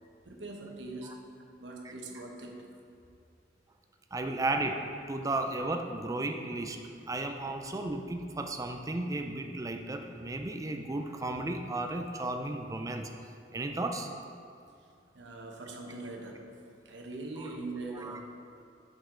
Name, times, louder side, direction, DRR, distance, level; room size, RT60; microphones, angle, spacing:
voice 1, 0.3-1.2 1.6-2.7 4.3-4.4 15.1-16.5 16.8-18.3, right 2 dB, 80° right, 1 dB, 0.9 m, -42 dB
voice 2, 4.1-6.8 7.1-13.1 13.5-14.1 18.0-18.2, right 2 dB, 20° right, 4 dB, 0.4 m, -34 dB
7.2 x 5.3 x 3.7 m, 2.4 s
head